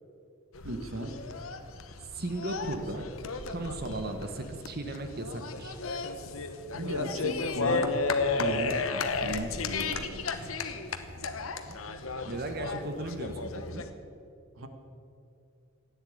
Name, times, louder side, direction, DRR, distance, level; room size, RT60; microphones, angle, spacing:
sound 1, 0.5-13.9, left 3 dB, 75° left, 1.1 m, -33 dB
voice 1, 0.6-1.2 6.7-7.9 8.4-10.3 14.6-14.7, right 1 dB, 80° right, 6 dB, 1.5 m, -37 dB
voice 2, 2.1-3.1 3.5-5.8 10.3-10.6 11.7-13.8, right 2 dB, 50° right, 6 dB, 1.2 m, -37 dB
15.0 x 9.7 x 8.6 m, 2.5 s
head